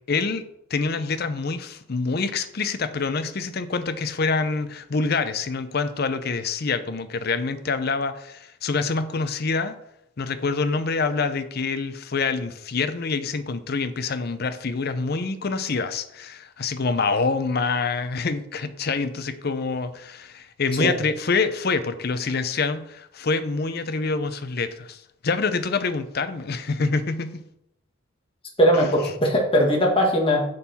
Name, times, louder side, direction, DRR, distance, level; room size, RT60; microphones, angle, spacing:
voice 1, 0.1-0.4 0.7-9.7 10.2-27.4 28.7-28.9, left 4 dB, 45° left, 11 dB, 0.6 m, -26 dB
voice 2, 28.6-30.4, equal, 25° left, 0 dB, 1.4 m, -19 dB
6.6 x 5.5 x 4.2 m, 0.78 s
head